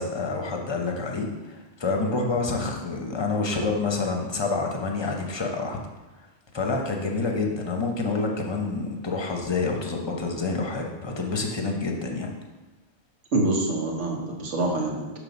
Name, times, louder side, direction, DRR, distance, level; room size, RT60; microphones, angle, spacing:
voice 1, 0.0-5.8 6.5-12.3, left 3 dB, 25° left, 1 dB, 0.7 m, -28 dB
voice 2, 13.3-15.2, right 2 dB, 75° right, 0 dB, 1.4 m, -26 dB
6.7 x 3.3 x 5.1 m, 1.1 s
omnidirectional pair, 1.2 m